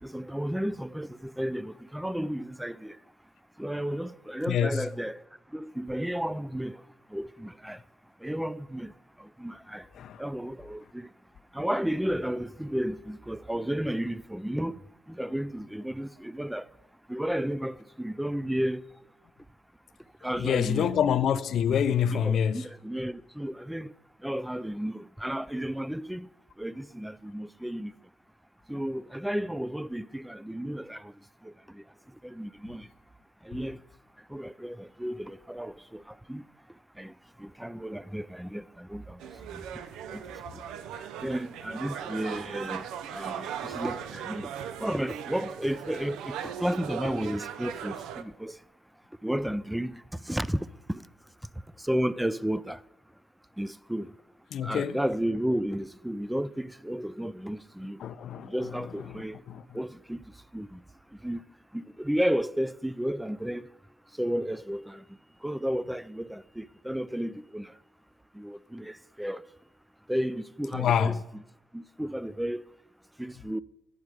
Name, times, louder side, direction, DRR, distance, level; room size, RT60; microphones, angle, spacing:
voice 1, 0.0-3.0 3.6-5.2 5.5-6.8 7.1-7.8 8.2-8.9 9.2-9.9 10.2-11.1 11.5-14.8 15.1-16.7 17.1-18.8 20.2-20.9 22.1-23.9 24.2-26.3 26.6-27.9 28.7-31.1 31.4-31.8 32.2-32.9 33.4-33.8 34.3-36.4 37.0-37.1 37.4-39.2 40.1-40.2 40.5-40.6 41.2-42.9 43.1-44.5 44.8-48.6 49.2-51.0 51.8-52.8 53.6-54.1 54.6-58.0 58.4-59.4 59.7-60.2 60.5-60.8 61.2-61.4 61.7-63.7 64.2-65.0 65.4-67.7 68.3-69.4 70.1-71.4 71.7-72.6 73.2-73.6, equal, 5° right, 0.3 m, -33 dB
voice 2, 4.5-4.8 10.0-10.2 20.4-22.6 54.5-55.0 58.0-58.5 59.5-59.6 70.7-71.2, left 8 dB, 65° left, 0.4 m, -26 dB
sound 1, 39.2-48.2, right 9 dB, 90° right, 0.4 m, -38 dB
10.5 x 7.4 x 4.8 m
cardioid pair, 90°, 0 cm